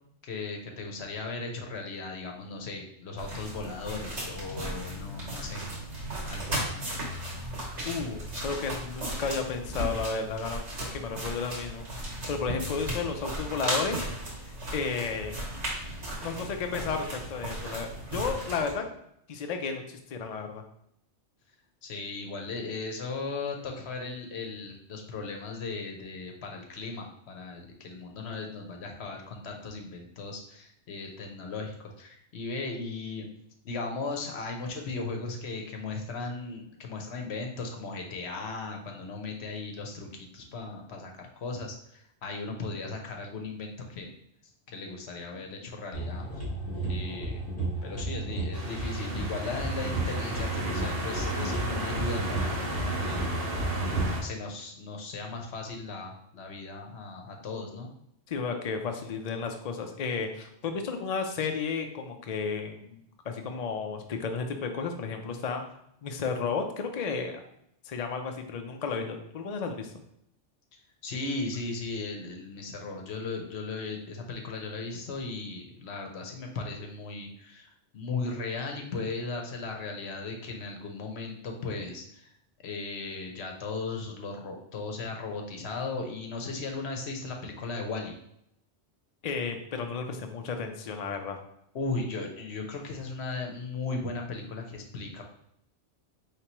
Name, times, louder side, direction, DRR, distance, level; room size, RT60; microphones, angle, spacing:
voice 1, 0.2-5.6 6.2-6.7 21.8-33.3 33.6-44.1 44.7-46.2 46.9-47.4 47.8-53.3 54.1-57.9 71.0-82.3 82.6-88.1 91.7-95.2, left 3 dB, 70° left, 3 dB, 1.0 m, -37 dB
sound 1, 3.2-18.7, right 1 dB, 80° right, 1.8 m, -36 dB
voice 2, 7.8-10.7 10.9-11.9 12.3-14.1 14.7-15.4 16.2-18.8 19.3-20.6 58.3-65.6 66.0-67.4 67.9-69.9 89.2-91.4, left 5 dB, 50° left, 5 dB, 0.4 m, -33 dB
sound 2, 45.9-54.1, right 2 dB, 15° left, 1.4 m, -32 dB
sound 3, 48.5-54.2, right 1 dB, 55° right, 1.2 m, -35 dB
4.6 x 3.3 x 2.9 m, 0.74 s
omnidirectional pair, 1.2 m